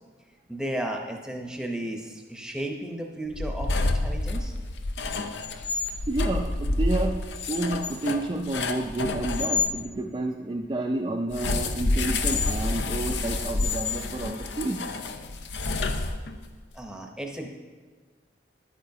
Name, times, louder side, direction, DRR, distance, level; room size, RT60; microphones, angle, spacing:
voice 1, 0.5-4.5 16.7-17.5, right 1 dB, 5° right, 2 dB, 0.7 m, -34 dB
sound 1, 3.3-9.7 11.3-16.5, left 3 dB, 70° left, 0.6 m, -28 dB
voice 2, 6.1-14.9, right 2 dB, 25° right, 1 dB, 0.3 m, -30 dB
10.0 x 8.7 x 2.7 m, 1.4 s
head